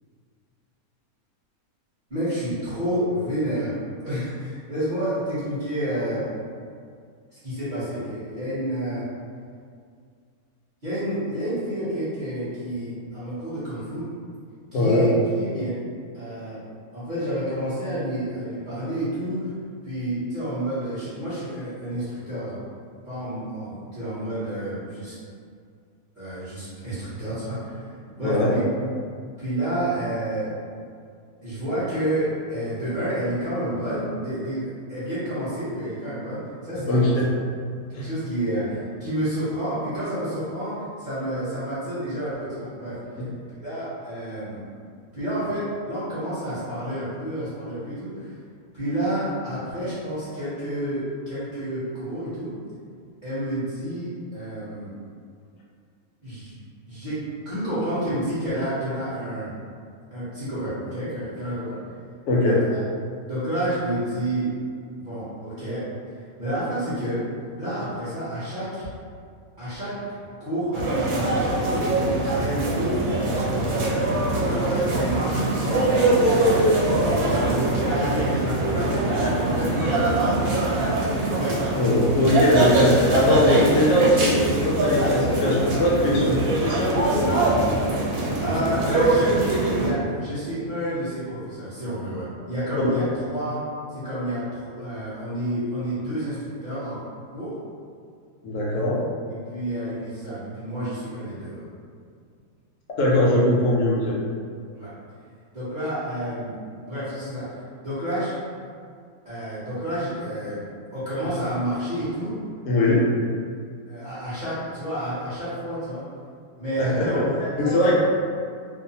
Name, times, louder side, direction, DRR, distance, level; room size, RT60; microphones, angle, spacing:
voice 1, 2.1-3.7 4.0-6.3 7.4-9.0 10.8-14.1 14.7-15.8 16.1-16.6 16.9-19.5 19.8-22.6 23.0-25.2 26.2-27.9 28.2-28.6 29.4-30.5 31.4-37.1 37.9-43.0 43.6-44.6 45.1-48.4 48.7-52.5 53.2-54.9 56.2-56.6 56.9-59.5 60.1-61.8 62.4-62.8 63.3-64.5 65.0-65.9 66.4-67.2 67.6-68.9 69.6-70.0 70.4-72.1 72.4-74.1 74.4-76.3 76.9-80.9 81.4-81.6 86.1-86.4 88.4-89.3 89.7-93.6 93.9-97.0 97.3-97.6 99.3-101.6 104.7-104.9 105.5-106.6 106.8-108.3 109.2-110.7 110.9-112.4 113.9-116.0 116.6-117.9, right 1 dB, 40° right, -14 dB, 0.8 m, -29 dB
voice 2, 14.7-15.0 28.2-28.5 36.9-37.3 37.9-38.1 62.3-62.6 81.8-86.3 86.6-87.3 98.4-99.0 103.0-104.2 112.6-113.0 116.8-117.2 117.6-117.9, left 1 dB, 70° left, -5 dB, 0.8 m, -21 dB
sound 1, 70.7-89.9, right 2 dB, 75° right, 1.0 m, -22 dB
2.6 x 2.0 x 2.7 m, 2.2 s
omnidirectional pair, 1.5 m